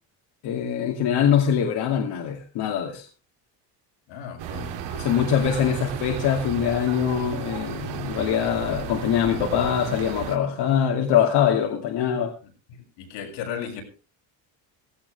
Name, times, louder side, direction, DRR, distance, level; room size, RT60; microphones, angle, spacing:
voice 1, 0.4-3.1 4.9-12.3, left 8 dB, 60° left, 2.6 m, -23 dB
voice 2, 4.1-4.8 5.4-5.6 12.4-13.8, left 8 dB, 85° left, 7.0 m, -36 dB
sound 1, 4.4-10.4, right 9 dB, 75° right, 2.7 m, -34 dB
17.0 x 16.5 x 3.5 m
cardioid pair, 145°, 43 cm